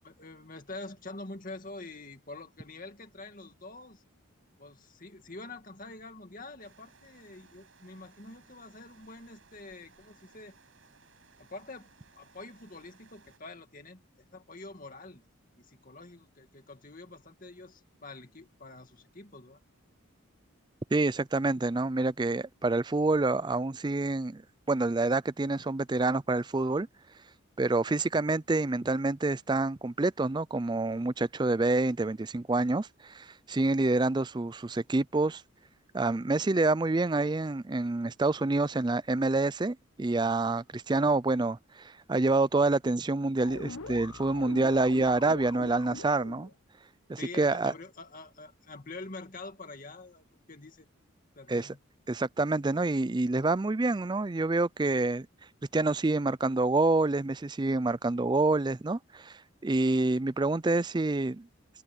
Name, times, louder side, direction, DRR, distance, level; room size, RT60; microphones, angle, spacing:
voice 1, 0.0-4.0 4.6-10.6 11.4-11.9 12.1-15.2 15.6-19.6 47.2-50.9 51.4-51.8, left 2 dB, 40° left, 2.3 m, -46 dB
sound 1, 6.6-13.4, right 5 dB, 65° right, 6.9 m, -61 dB
voice 2, 20.9-24.4 24.7-26.9 27.6-35.4 35.9-46.5 47.1-47.7 51.5-51.7 52.1-55.3 55.7-61.5, right 2 dB, 20° right, 0.4 m, -27 dB
sound 2, 43.4-46.5, left 3 dB, 80° left, 1.2 m, -42 dB
head